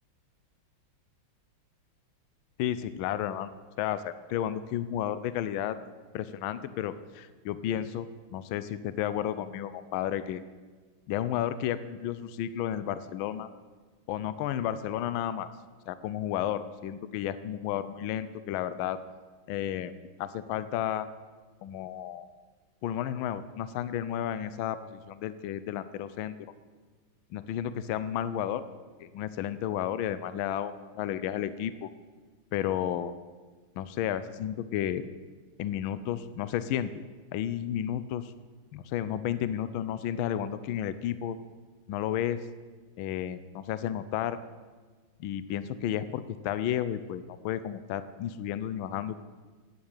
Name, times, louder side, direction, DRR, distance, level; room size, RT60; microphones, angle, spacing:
voice 1, 2.6-5.8 6.1-10.4 11.1-13.5 14.1-15.5 15.9-19.0 19.5-19.9 20.2-21.1 21.6-22.3 22.8-26.4 27.3-28.6 29.0-31.9 32.5-33.1 33.8-35.1 35.6-36.9 37.3-38.3 38.7-41.4 41.9-42.4 43.0-44.4 45.2-49.2, left 11 dB, 80° left, 14 dB, 1.4 m, -32 dB
11.5 x 8.6 x 9.0 m, 1.4 s
omnidirectional pair, 2.2 m